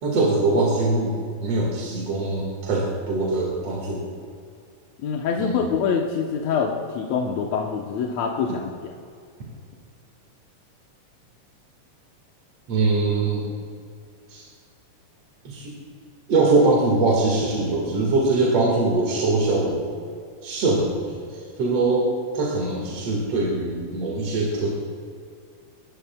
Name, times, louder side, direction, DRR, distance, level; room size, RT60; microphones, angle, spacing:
voice 1, 0.0-4.0 5.4-5.7 12.7-13.4 14.3-14.4 15.4-15.7 16.3-19.9 20.4-24.7, right 3 dB, 50° right, -3 dB, 2.8 m, -22 dB
voice 2, 5.0-8.9, left 6 dB, 70° left, 0 dB, 1.9 m, -25 dB
25.0 x 12.5 x 2.3 m, 2.3 s
omnidirectional pair, 3.7 m